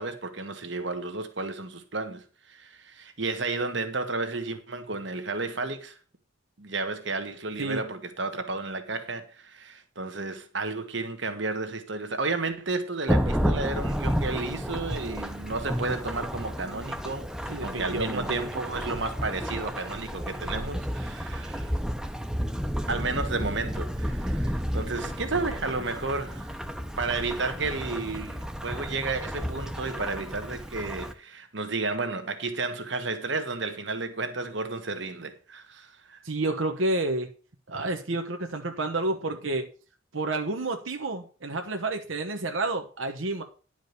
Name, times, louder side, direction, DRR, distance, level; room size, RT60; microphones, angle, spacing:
voice 1, 0.0-6.0 6.6-21.7 22.9-26.6 27.0-36.2, right 3 dB, 65° right, 1.5 m, -32 dB
Thunderstorm / Rain, 13.1-31.1, equal, 5° right, 0.8 m, -31 dB
voice 2, 17.5-18.4 36.2-37.3 37.7-39.7 40.1-43.4, right 2 dB, 85° right, 1.2 m, -30 dB
11.0 x 5.1 x 6.7 m
head